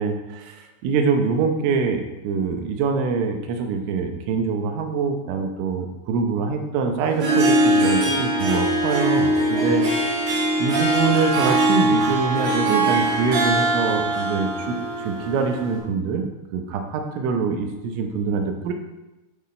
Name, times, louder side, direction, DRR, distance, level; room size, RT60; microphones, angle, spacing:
voice 1, 0.5-9.8 10.6-16.3 16.5-18.7, right 5 dB, 80° right, 4 dB, 3.2 m, -24 dB
Harp, 7.0-15.8, right 1 dB, 60° right, 3.4 m, -21 dB
11.5 x 4.4 x 4.3 m, 1.0 s
omnidirectional pair, 5.7 m